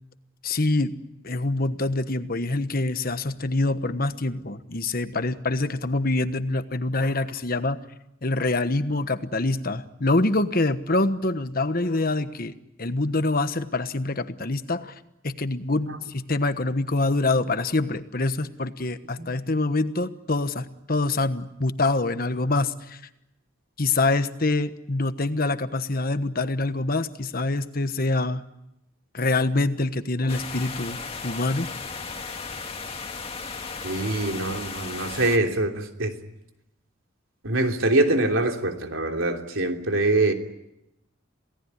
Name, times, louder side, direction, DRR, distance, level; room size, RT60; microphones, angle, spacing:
voice 1, 0.4-1.0 1.2-7.8 8.2-12.5 12.8-14.9 15.2-23.0 23.8-28.4 29.1-31.7, left 2 dB, 45° left, 11 dB, 1.2 m, -25 dB
voice 2, 19.2-19.5 33.8-36.1 37.4-40.3, right 2 dB, 80° right, 3 dB, 3.2 m, -24 dB
sound 1, 30.3-35.4, left 4 dB, 30° left, 2.1 m, -35 dB
28.0 x 18.0 x 9.8 m, 0.89 s
head